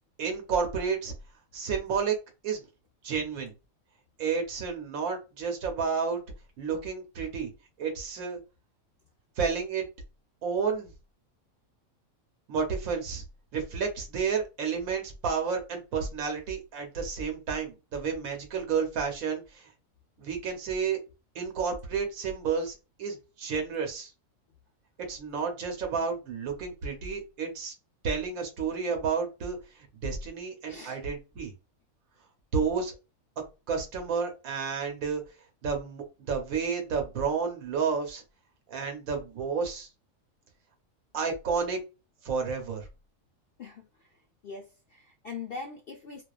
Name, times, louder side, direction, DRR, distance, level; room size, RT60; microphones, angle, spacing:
voice 1, 0.2-1.1 1.5-2.2 2.4-2.6 3.0-3.5 4.2-6.2 6.6-7.5 7.8-8.4 9.4-9.9 10.4-10.9 12.5-13.2 13.5-19.7 20.2-21.0 21.3-24.1 25.0-27.7 28.0-29.6 30.0-31.5 32.5-32.9 33.7-35.2 35.6-38.2 38.7-39.9 41.1-41.8 42.2-42.8, right 5 dB, 80° right, 1.2 m, -31 dB
voice 2, 44.4-46.2, left 4 dB, 70° left, 0.5 m, -41 dB
2.4 x 2.3 x 2.3 m
omnidirectional pair, 1.5 m